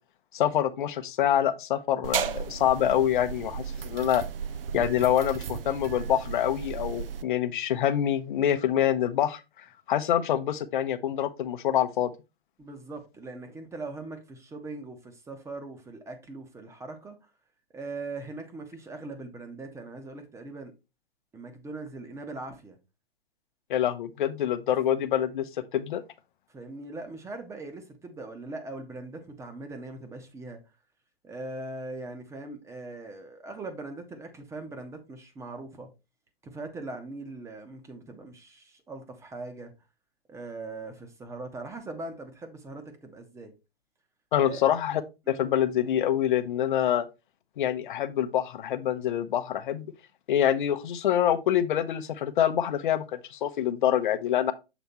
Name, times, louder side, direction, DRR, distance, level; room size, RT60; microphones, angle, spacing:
voice 1, 0.3-4.2 4.7-12.1 23.7-26.0 44.3-45.0 45.3-47.1 47.6-49.9 50.3-54.5, left 10 dB, 55° left, 0.8 m, -26 dB
sound 1, 2.0-7.2, right 7 dB, 70° right, 0.6 m, -35 dB
voice 2, 12.6-17.3 17.7-20.7 21.3-22.8 26.5-30.6 31.2-35.9 36.4-39.7 40.3-43.5 44.4-44.7 45.3-45.4, right 2 dB, 10° right, 1.0 m, -40 dB
7.0 x 3.4 x 4.2 m
hypercardioid pair, 125°, 30 cm